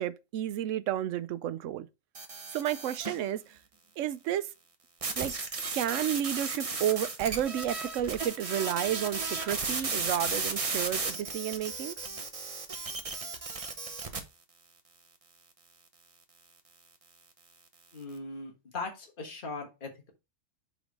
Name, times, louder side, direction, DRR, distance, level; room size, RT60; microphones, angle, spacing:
voice 1, 0.0-1.9 2.5-3.6 4.0-4.5 5.2-5.3 5.7-12.0, right 11 dB, 85° right, 0.9 m, -31 dB
sound 1, 2.1-3.2 5.0-14.2, right 4 dB, 30° right, 0.9 m, -35 dB
voice 2, 17.9-20.1, left 3 dB, 45° left, 1.6 m, -39 dB
5.1 x 4.0 x 5.1 m
omnidirectional pair, 1.3 m